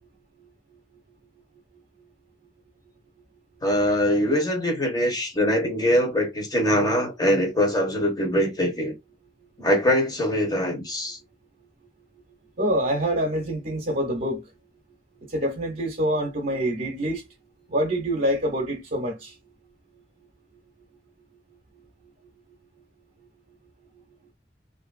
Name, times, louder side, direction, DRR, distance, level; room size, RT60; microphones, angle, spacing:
voice 1, 3.6-8.9 9.6-11.2, equal, 20° left, 1.0 m, -23 dB
voice 2, 12.6-14.4 15.3-17.2 17.7-19.3, equal, 45° right, 0.7 m, -26 dB
2.9 x 2.5 x 2.4 m
head